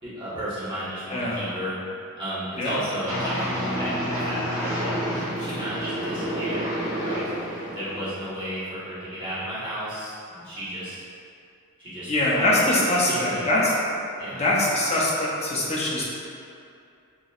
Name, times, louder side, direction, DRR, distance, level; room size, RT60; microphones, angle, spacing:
voice 1, 0.0-1.8 2.2-6.7 7.0-7.4 7.7-11.0 11.8-12.7 13.0-13.5 14.2-14.4, equal, 20° right, -13 dB, 1.4 m, -33 dB
sound 1, 3.1-8.1, equal, 80° right, 1.0 m, -29 dB
voice 2, 12.1-13.7 14.3-16.1, left 1 dB, 30° left, -6 dB, 0.7 m, -23 dB
4.6 x 3.0 x 2.4 m, 2.6 s
head